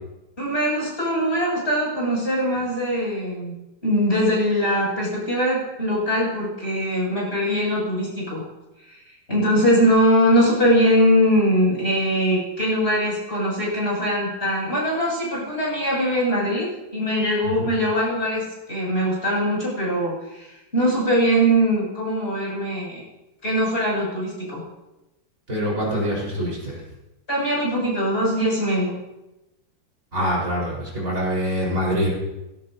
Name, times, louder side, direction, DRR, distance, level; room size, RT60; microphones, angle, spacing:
voice 1, 0.4-8.5 8.8-23.0 23.4-24.6 27.3-29.0, equal, 30° left, -5 dB, 7.4 m, -22 dB
voice 2, 25.5-26.8 30.1-32.1, equal, 40° right, -4 dB, 5.0 m, -25 dB
20.0 x 17.0 x 2.8 m, 0.99 s
omnidirectional pair, 2.1 m